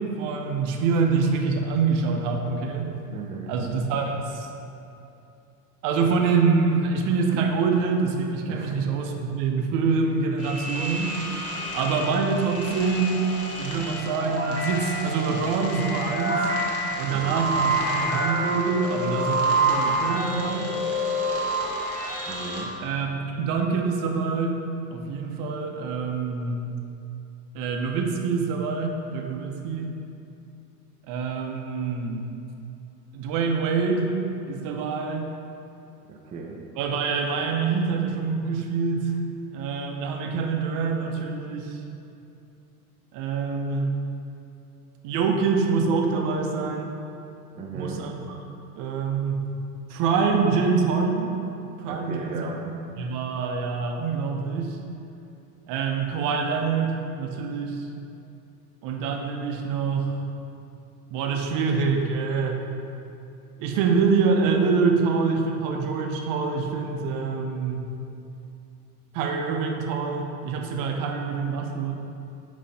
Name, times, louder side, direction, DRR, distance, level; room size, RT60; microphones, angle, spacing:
voice 1, 0.0-2.9 3.5-4.5 5.8-11.2 11.7-13.3 13.6-16.5 17.0-20.7 22.8-24.6 24.9-26.6 27.5-29.9 31.1-32.2 33.1-34.2 34.5-35.3 36.8-39.2 39.5-41.8 43.1-43.9 45.0-46.9 47.7-48.4 48.8-49.4 49.9-51.3 51.8-52.5 53.0-54.8 55.7-57.9 58.8-60.2 61.1-62.6 63.6-67.9 69.1-71.9, right 5 dB, 45° right, 2 dB, 0.8 m, -25 dB
voice 2, 3.1-3.5 8.5-8.8 17.1-17.4 22.3-22.7 36.1-36.6 47.6-48.0 51.8-52.6, right 4 dB, 15° right, -2 dB, 0.5 m, -36 dB
Noise phone, 10.4-22.6, right 1 dB, 30° left, 1.3 m, -28 dB
9.0 x 3.2 x 4.1 m, 2.7 s
hypercardioid pair, 90°, 48 cm